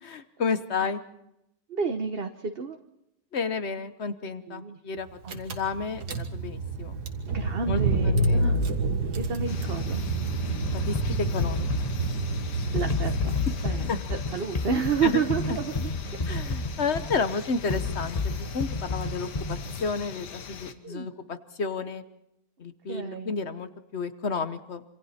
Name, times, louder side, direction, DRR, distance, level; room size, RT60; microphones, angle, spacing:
voice 1, 0.1-1.0 3.3-6.9 7.3-8.5 10.9-11.0 11.3-11.9 13.9-14.0 15.0-15.2 15.5-15.6 16.3-22.0 22.6-24.8, left 4 dB, 45° left, 11 dB, 1.2 m, -32 dB
voice 2, 1.7-2.8 4.5-4.8 5.2-5.3 7.3-8.6 9.1-10.0 12.7-16.3 20.8-21.1 22.9-23.3, right 6 dB, 40° right, 5 dB, 1.1 m, -30 dB
Car / Engine, 5.0-5.1 5.3-13.6, right 3 dB, 75° right, 2.2 m, -28 dB
sound 1, 9.5-20.7, left 7 dB, 90° left, 1.9 m, -39 dB
sound 2, 10.5-20.1, left 3 dB, 25° left, 1.1 m, -31 dB
27.0 x 26.0 x 4.3 m, 0.83 s
omnidirectional pair, 1.8 m